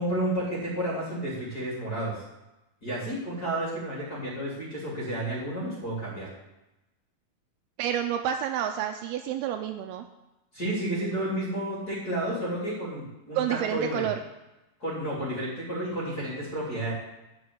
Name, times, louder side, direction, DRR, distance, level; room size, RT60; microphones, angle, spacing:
voice 1, 0.0-2.2 2.8-6.3 10.5-14.1 14.8-16.9, right 1 dB, 25° left, -5 dB, 3.1 m, -31 dB
voice 2, 7.8-10.0 13.4-14.2, right 10 dB, 80° right, 6 dB, 2.4 m, -29 dB
10.0 x 6.0 x 8.0 m, 0.99 s
omnidirectional pair, 4.7 m